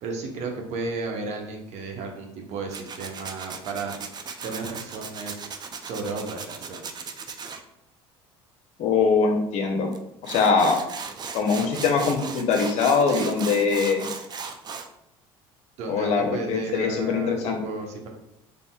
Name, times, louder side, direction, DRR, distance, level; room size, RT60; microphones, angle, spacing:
voice 1, 0.0-3.9 4.4-5.4 5.8-7.1 13.1-13.5 15.8-18.1, right 3 dB, 55° right, 2 dB, 0.9 m, -33 dB
Tools, 2.7-7.6 9.9-10.0 10.2-14.9, right 5 dB, 30° right, 0.4 m, -37 dB
voice 2, 8.8-9.9 10.2-10.8 11.3-14.1 15.9-17.6, left 5 dB, 60° left, 1 dB, 0.8 m, -22 dB
4.1 x 3.4 x 2.3 m, 0.80 s
supercardioid pair, 85°, 13 cm